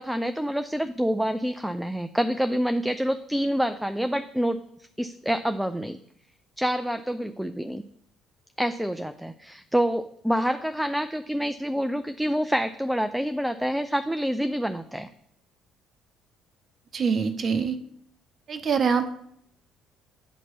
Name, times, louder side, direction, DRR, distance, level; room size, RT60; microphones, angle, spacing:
voice 1, 0.0-4.6 5.0-6.0 6.6-7.8 8.6-15.1, equal, 5° right, 9 dB, 0.4 m, -27 dB
voice 2, 16.9-17.8 18.5-19.1, right 6 dB, 45° right, 9 dB, 0.7 m, -24 dB
9.0 x 3.0 x 5.8 m, 0.71 s
hypercardioid pair, 55°, 0 cm